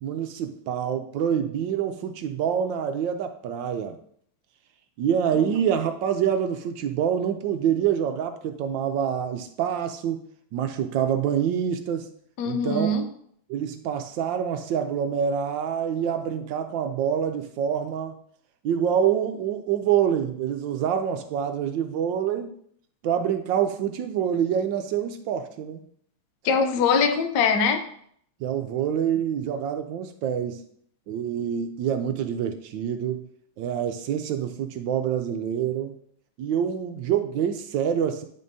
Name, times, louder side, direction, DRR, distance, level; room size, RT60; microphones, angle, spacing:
voice 1, 0.0-4.0 5.0-10.2 10.5-12.1 12.4-12.9 13.5-18.2 18.6-22.5 23.0-25.8 28.4-30.6 31.1-33.3 33.6-36.0 36.4-38.2, right 8 dB, 75° right, 1.2 m, -26 dB
voice 2, 12.4-13.1 26.4-27.9, left 4 dB, 65° left, 1.2 m, -22 dB
9.1 x 5.4 x 2.7 m
omnidirectional pair, 2.2 m